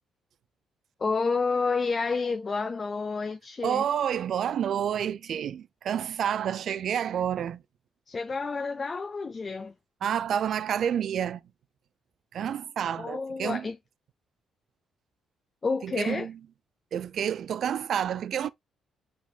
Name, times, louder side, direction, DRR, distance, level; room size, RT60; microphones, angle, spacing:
voice 1, 1.0-3.8 8.1-9.7 13.0-13.8 15.6-16.3, left 4 dB, 35° left, 0.6 m, -29 dB
voice 2, 3.6-7.6 10.0-11.4 12.3-13.7 15.8-16.3 16.9-18.5, right 9 dB, 65° right, 0.4 m, -29 dB
4.9 x 3.6 x 2.3 m
cardioid pair, 90°, 0 cm